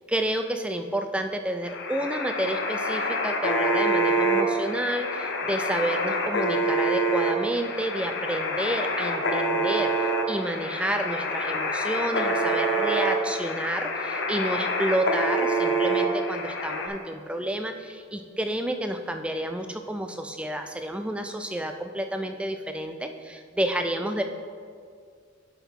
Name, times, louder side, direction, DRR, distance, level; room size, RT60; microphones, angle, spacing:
voice 1, 0.1-24.2, right 1 dB, 5° right, 6 dB, 0.3 m, -30 dB
sound 1, 1.6-16.9, right 1 dB, 55° left, 0.7 m, -26 dB
10.0 x 5.8 x 3.6 m, 2.2 s
head